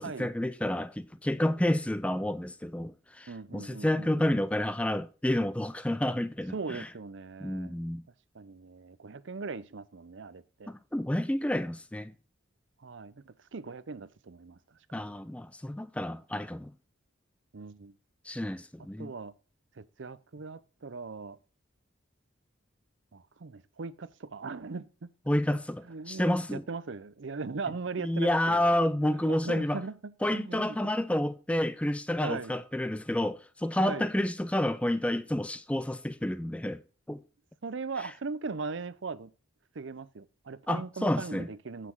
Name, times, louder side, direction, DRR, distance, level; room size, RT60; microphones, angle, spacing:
voice 1, 0.0-6.9 7.4-8.0 10.7-12.1 14.9-16.7 18.3-19.1 25.3-26.6 28.0-29.8 30.2-36.8 37.1-37.2 40.7-41.5, left 1 dB, 5° left, 0.3 m, -30 dB
voice 2, 3.3-4.4 6.5-7.8 8.3-10.7 12.8-14.6 17.5-18.0 19.0-19.3 19.8-21.4 23.1-25.1 25.5-28.7 29.0-30.9 32.2-32.5 33.8-34.1 37.6-39.3 39.7-41.9, right 4 dB, 70° right, 0.6 m, -39 dB
8.3 x 5.9 x 4.4 m
head